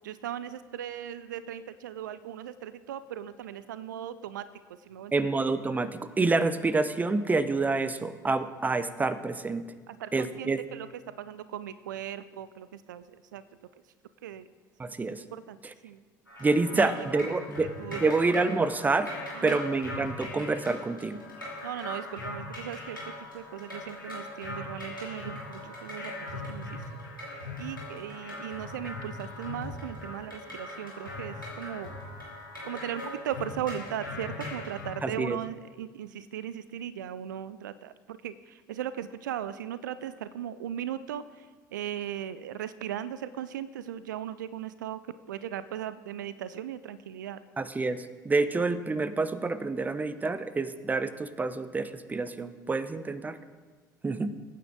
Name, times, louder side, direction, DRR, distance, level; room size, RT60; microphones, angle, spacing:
voice 1, 0.0-4.5 4.9-5.3 9.9-10.9 11.2-13.4 14.2-14.5 15.3-15.6 15.8-16.0 16.7-17.2 17.8-18.1 19.3-19.6 21.6-23.0 23.3-26.8 27.6-31.9 32.7-47.4, right 10 dB, 70° right, 15 dB, 0.4 m, -38 dB
voice 2, 5.1-9.6 10.1-10.6 14.8-15.2 16.4-19.2 19.4-21.2 35.0-35.4 47.6-48.0 48.2-53.4 54.0-54.3, right 3 dB, 15° right, 14 dB, 0.7 m, -28 dB
sound 1, 16.3-34.9, left 2 dB, 90° left, 2.8 m, -40 dB
21.5 x 9.3 x 3.7 m, 1.5 s
figure-of-eight pair, 60°, 11 cm